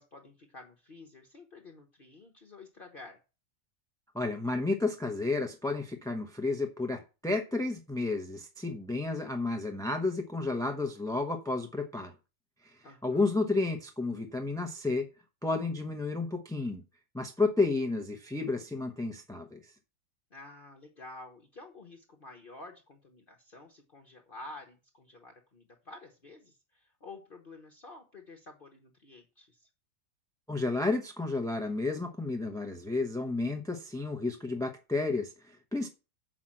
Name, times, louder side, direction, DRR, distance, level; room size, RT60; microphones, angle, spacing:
voice 1, 0.0-3.2 12.8-13.5 20.3-29.7, left 2 dB, 40° left, 3 dB, 1.2 m, -50 dB
voice 2, 4.1-12.1 12.6-12.7 13.0-15.1 15.4-16.8 17.1-19.6 30.5-35.9, left 3 dB, 5° left, 4 dB, 0.6 m, -31 dB
7.3 x 5.8 x 7.5 m, 0.31 s
omnidirectional pair, 1.7 m